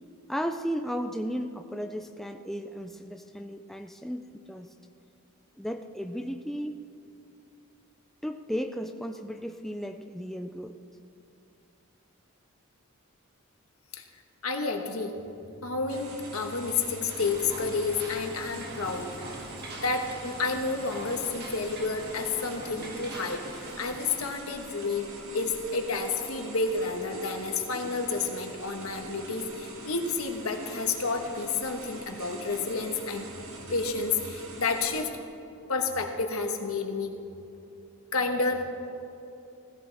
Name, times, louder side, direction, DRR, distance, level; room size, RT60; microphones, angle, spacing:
voice 1, 0.3-4.7 5.6-6.8 8.2-10.7, equal, ahead, 5 dB, 0.4 m, -34 dB
voice 2, 14.4-15.1 15.6-19.3 19.8-25.1 25.3-33.2 33.7-35.1 35.7-37.1 38.1-38.6, left 4 dB, 85° left, 4 dB, 1.4 m, -30 dB
sound 1, 15.9-35.0, right 2 dB, 80° right, 1.9 m, -44 dB
sound 2, 17.1-24.2, right 1 dB, 50° right, 1.9 m, -44 dB
16.5 x 15.5 x 3.5 m, 2.8 s
head